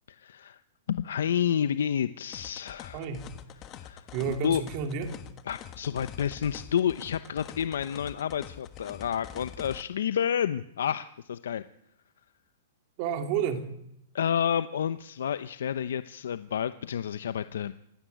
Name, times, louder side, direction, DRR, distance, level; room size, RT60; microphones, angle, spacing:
voice 1, 0.1-0.6 0.9-3.1 3.6-4.6 5.5-11.7 14.1-17.7, left 8 dB, 80° left, 13 dB, 0.9 m, -30 dB
sound 1, 2.3-9.8, left 9 dB, 20° left, 1.4 m, -45 dB
voice 2, 2.9-3.3 4.1-5.1 13.0-13.7, right 7 dB, 30° right, 6 dB, 2.7 m, -30 dB
26.0 x 16.5 x 9.4 m, 0.80 s
supercardioid pair, 175°, 0 cm